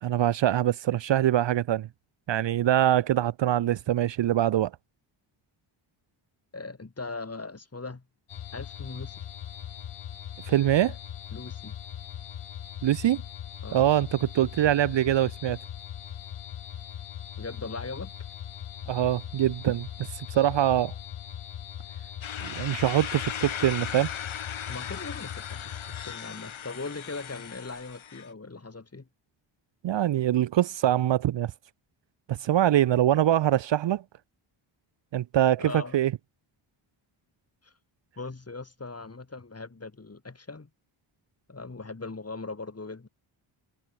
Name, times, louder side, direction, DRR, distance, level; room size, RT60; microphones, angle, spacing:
voice 1, 0.0-1.9 2.3-4.7 10.5-10.9 12.8-13.2 13.7-15.6 18.9-19.9 20.1-20.9 22.4-24.1 29.8-31.5 32.3-34.0 35.1-36.1, right 12 dB, 60° right, 0.7 m, -24 dB
voice 2, 6.5-8.0 8.5-9.2 11.3-11.8 13.6-13.8 17.4-18.1 24.7-29.1 35.6-36.0 37.6-37.7 38.2-40.7 41.5-43.1, left 3 dB, 30° left, 7.7 m, -39 dB
sound 1, 8.3-26.2, left 10 dB, 85° left, 3.9 m, -40 dB
sound 2, 22.2-28.3, left 8 dB, 70° left, 2.9 m, -38 dB
cardioid pair, 85°, 49 cm